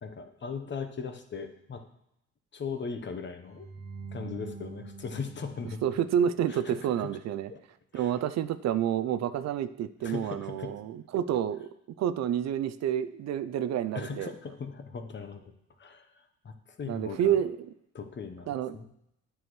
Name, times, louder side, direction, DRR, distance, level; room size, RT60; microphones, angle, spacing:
voice 1, 0.0-1.8 2.5-3.7 4.1-5.8 6.5-6.9 7.5-7.6 7.9-8.2 10.0-10.7 13.9-15.5 15.8-17.4 17.9-18.9, left 5 dB, 40° left, 7 dB, 0.9 m, -39 dB
sound 1, 3.5-6.7, right 5 dB, 40° right, 1.6 m, -45 dB
voice 2, 5.8-7.5 7.9-11.7 12.0-14.3 16.9-17.7 18.5-18.8, right 10 dB, 60° right, 13 dB, 0.4 m, -29 dB
9.4 x 6.2 x 3.1 m, 0.80 s
cardioid pair, 90°, 30 cm